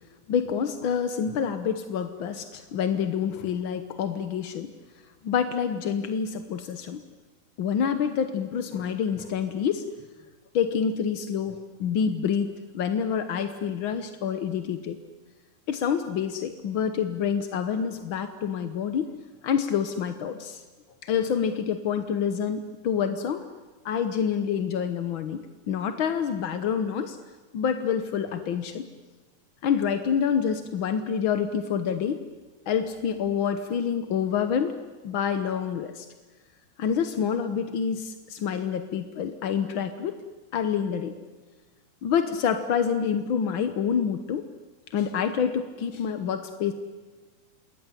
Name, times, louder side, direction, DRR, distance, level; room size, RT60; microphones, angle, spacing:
voice 1, 0.3-4.7 5.2-7.0 7.6-9.8 10.5-12.5 12.7-15.0 15.7-19.1 19.4-20.6 21.0-23.4 23.8-27.2 27.5-28.8 29.6-32.2 32.7-34.8 35.0-36.1 36.8-40.2 40.5-41.2 42.0-44.5 44.9-46.7, left 7 dB, 60° left, 9 dB, 1.3 m, -27 dB
27.5 x 21.0 x 9.9 m, 1.3 s
omnidirectional pair, 3.5 m